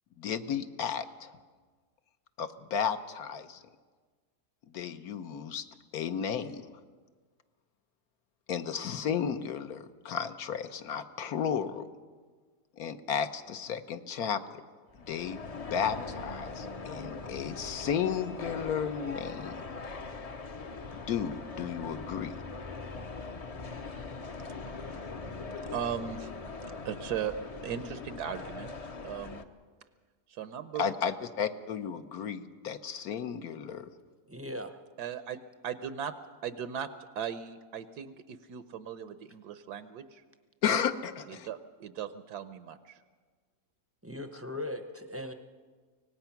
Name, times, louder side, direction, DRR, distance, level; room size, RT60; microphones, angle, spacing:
voice 1, 0.2-1.3 2.4-3.6 4.7-5.6 5.9-6.7 8.5-11.9 12.8-14.4 15.1-19.6 21.0-22.4 30.8-33.9 40.6-41.5, left 7 dB, 70° left, 9 dB, 1.3 m, -33 dB
sound 1, 14.9-29.4, left 3 dB, 35° left, 0.6 m, -41 dB
voice 2, 24.7-25.0 25.7-26.3 26.8-27.4 27.6-28.7 29.0-29.4 30.3-30.9 35.0-36.1 36.4-36.9 37.1-40.2 41.3-43.0, right 8 dB, 80° right, 11 dB, 1.3 m, -38 dB
voice 3, 34.3-34.8 44.0-45.3, left 1 dB, 15° right, 7 dB, 0.6 m, -38 dB
24.5 x 18.5 x 5.8 m, 1.5 s
omnidirectional pair, 1.7 m